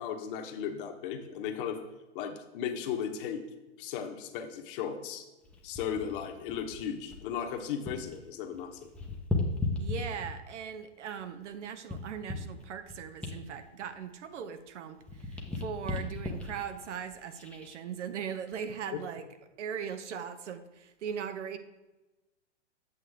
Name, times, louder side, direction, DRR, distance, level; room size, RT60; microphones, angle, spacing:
voice 1, 0.0-1.8 2.1-3.4 3.8-5.2 5.6-8.8, left 8 dB, 45° left, 5 dB, 1.1 m, -36 dB
sound 1, 5.4-8.2 8.5-10.6 11.1-14.7 15.0-17.8 18.3-18.5, left 3 dB, 5° left, 0.7 m, -37 dB
voice 2, 9.8-19.3 19.6-21.6, right 7 dB, 70° right, 10 dB, 0.9 m, -39 dB
8.2 x 6.8 x 3.5 m, 1.1 s
hypercardioid pair, 135°, 37 cm